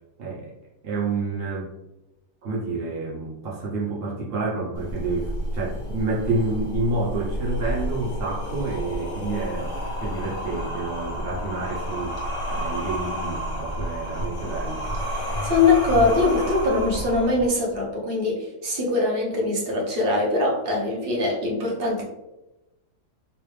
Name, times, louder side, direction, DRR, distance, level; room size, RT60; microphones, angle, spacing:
voice 1, 0.2-0.5 0.8-1.7 2.4-14.8, right 3 dB, 70° right, -5 dB, 0.5 m, -29 dB
sound 1, 4.7-17.7, equal, 50° left, 1.1 m, -30 dB
voice 2, 15.4-22.0, left 3 dB, 40° right, -3 dB, 0.9 m, -22 dB
3.2 x 3.0 x 3.2 m, 0.97 s
omnidirectional pair, 1.9 m